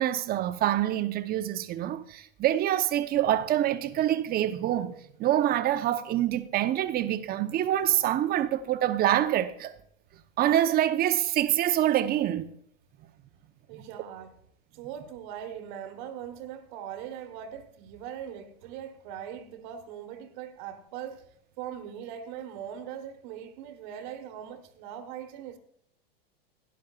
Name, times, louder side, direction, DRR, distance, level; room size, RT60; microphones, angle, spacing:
voice 1, 0.0-9.7 10.4-12.5, right 12 dB, 30° right, 0.9 m, -26 dB
voice 2, 13.7-14.3 14.7-21.3 21.6-25.6, right 9 dB, 50° right, 1.4 m, -40 dB
17.0 x 10.5 x 2.4 m
hypercardioid pair, 100°, 30 cm